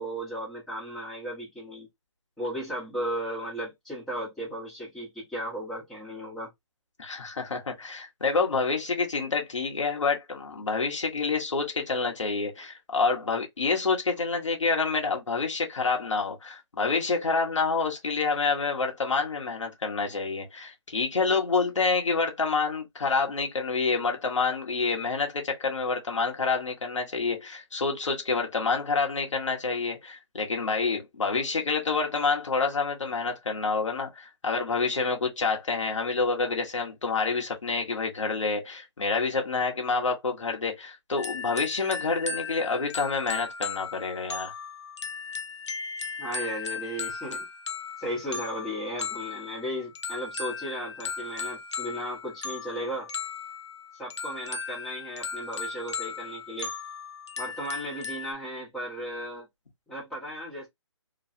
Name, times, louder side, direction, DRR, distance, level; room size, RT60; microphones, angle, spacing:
voice 1, 0.0-1.9 2.4-6.5 46.2-47.5 48.0-53.1 53.9-56.7 57.4-59.5 59.9-60.7, equal, 5° left, 1.1 m, -35 dB
voice 2, 7.0-44.5, left 4 dB, 90° left, 1.3 m, -28 dB
sound 1, 41.2-58.3, left 5 dB, 70° left, 0.8 m, -37 dB
3.1 x 2.3 x 2.6 m
hypercardioid pair, 160°, 15 cm